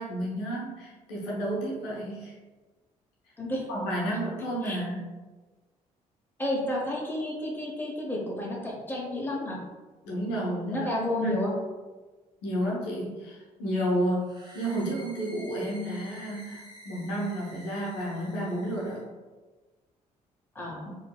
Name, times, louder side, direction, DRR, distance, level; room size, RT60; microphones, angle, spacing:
voice 1, 0.0-2.3 3.7-5.0 10.0-10.9 11.2-11.5 12.4-19.0 20.8-20.9, right 1 dB, 65° left, -4 dB, 0.8 m, -31 dB
voice 2, 6.4-9.6 10.6-11.5 20.5-20.9, left 1 dB, 10° left, -3 dB, 1.0 m, -31 dB
sound 1, 14.2-19.0, equal, 20° right, 1.0 m, -50 dB
4.4 x 2.6 x 2.2 m, 1.3 s
figure-of-eight pair, 45°, 19 cm